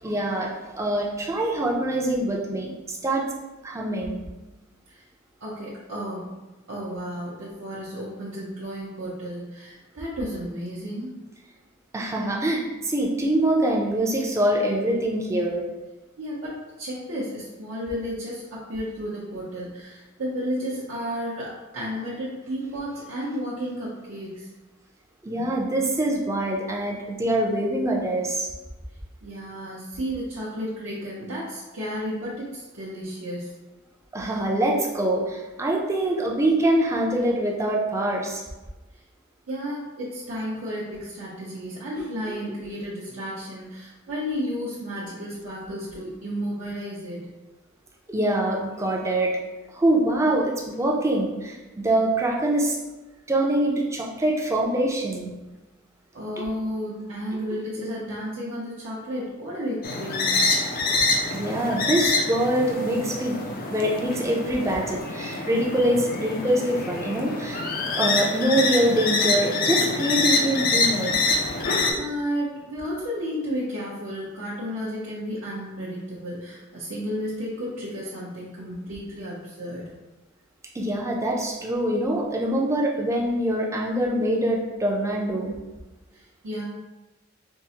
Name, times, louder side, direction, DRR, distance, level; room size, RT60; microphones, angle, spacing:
voice 1, 0.0-3.3 3.6-4.2 11.9-15.7 25.2-28.5 34.1-38.4 42.0-42.4 48.1-49.3 49.7-52.8 53.3-55.3 56.4-56.5 57.3-57.4 61.3-63.4 63.7-67.6 67.9-71.2 80.7-85.5, right 1 dB, 15° right, -1 dB, 0.4 m, -24 dB
voice 2, 5.4-6.3 6.7-11.1 16.2-24.5 25.3-25.5 29.2-33.5 39.5-47.3 56.1-60.4 71.9-79.9 86.1-86.6, equal, 70° right, -8 dB, 0.7 m, -32 dB
sound 1, 59.8-71.9, left 3 dB, 45° left, 0.4 m, -26 dB
4.5 x 2.0 x 2.7 m, 1.1 s
head